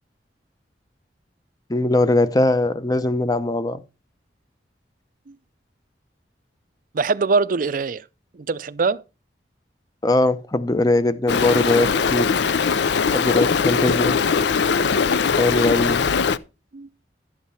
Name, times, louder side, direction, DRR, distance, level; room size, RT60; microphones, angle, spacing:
voice 1, 1.7-3.8 10.0-12.3 13.1-14.2 15.4-16.0, left 2 dB, 20° left, 0.7 m, -20 dB
voice 2, 6.9-8.1 8.3-9.0 16.7-16.9, right 4 dB, 50° right, 0.5 m, -22 dB
Stream, 11.3-16.4, left 5 dB, 70° left, 0.5 m, -20 dB
11.5 x 7.4 x 4.2 m
head